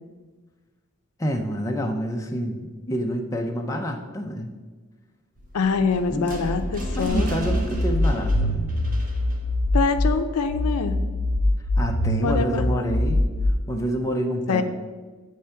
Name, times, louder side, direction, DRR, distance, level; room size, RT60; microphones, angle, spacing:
voice 1, 1.2-4.5 6.1-6.3 6.9-8.7 11.8-13.3 13.7-14.6, equal, 15° left, 2 dB, 0.5 m, -27 dB
sound 1, 5.4-10.5, equal, 35° right, 0.8 m, -34 dB
voice 2, 5.5-7.3 9.7-11.0 12.2-12.6 14.5-14.6, left 4 dB, 90° left, 8 dB, 0.5 m, -24 dB
sound 2, 7.1-10.1 10.5-13.5, left 1 dB, 85° right, 1.1 m, -23 dB
7.8 x 3.4 x 5.6 m, 1.4 s
head